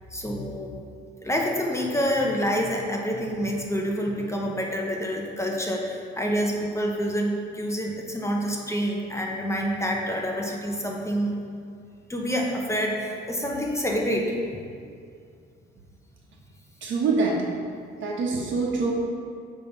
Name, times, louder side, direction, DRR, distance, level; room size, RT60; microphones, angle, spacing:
voice 1, 0.1-0.8 1.2-11.3 12.1-14.4, equal, 15° left, 0 dB, 1.0 m, -27 dB
voice 2, 16.8-17.5 18.0-18.9, right 4 dB, 70° right, -2 dB, 1.4 m, -25 dB
7.6 x 3.5 x 5.4 m, 2.3 s
cardioid pair, 90°, 20 cm